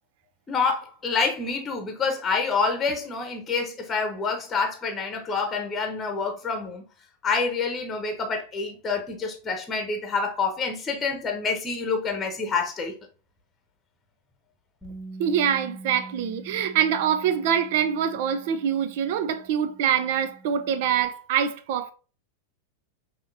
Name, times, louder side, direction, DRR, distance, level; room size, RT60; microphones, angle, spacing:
voice 1, 0.5-6.8 7.2-12.9, left 4 dB, 20° left, 1.0 m, -27 dB
Bass guitar, 14.8-21.1, right 2 dB, 5° right, 2.2 m, -45 dB
voice 2, 15.2-21.9, right 8 dB, 50° right, 0.5 m, -24 dB
5.6 x 2.9 x 2.7 m
figure-of-eight pair, 90°, 0 cm